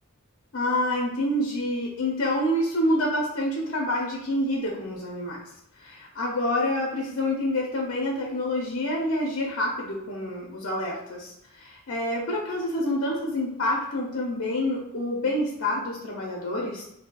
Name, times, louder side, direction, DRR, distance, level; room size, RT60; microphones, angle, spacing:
voice 1, 0.5-5.4 5.8-16.8, left 1 dB, 80° left, -2 dB, 0.7 m, -27 dB
4.2 x 2.7 x 2.3 m, 0.80 s
head